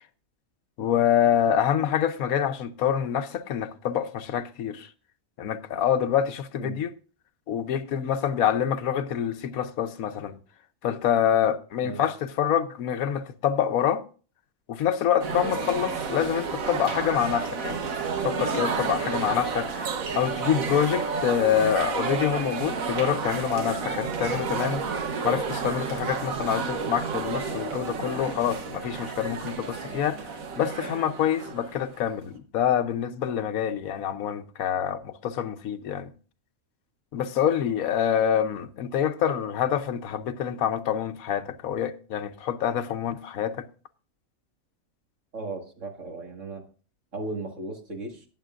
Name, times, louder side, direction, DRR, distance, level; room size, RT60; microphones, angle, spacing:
voice 1, 0.8-4.9 5.4-6.9 7.5-10.4 10.8-14.0 14.7-17.8 18.2-24.9 25.2-30.2 30.6-36.1 37.1-43.7, left 9 dB, 90° left, 1.2 m, -26 dB
sound 1, 15.2-32.0, right 5 dB, 75° right, 1.6 m, -31 dB
voice 2, 45.3-46.6 47.1-48.3, right 2 dB, 60° right, 2.3 m, -36 dB
18.5 x 7.6 x 2.5 m
omnidirectional pair, 1.4 m